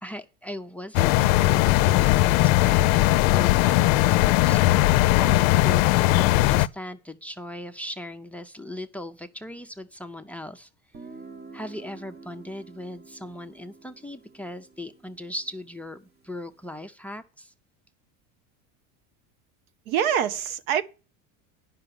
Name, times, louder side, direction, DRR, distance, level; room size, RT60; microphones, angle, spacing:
voice 1, 0.0-10.7 11.5-17.5, left 1 dB, 5° left, 0.5 m, -38 dB
sound 1, 0.9-6.7, left 17 dB, 70° left, 0.5 m, -19 dB
Guitar, 10.9-16.5, right 4 dB, 25° right, 1.1 m, -48 dB
voice 2, 19.9-20.8, right 9 dB, 85° right, 1.0 m, -24 dB
9.7 x 5.8 x 6.9 m
supercardioid pair, 125°, 41 cm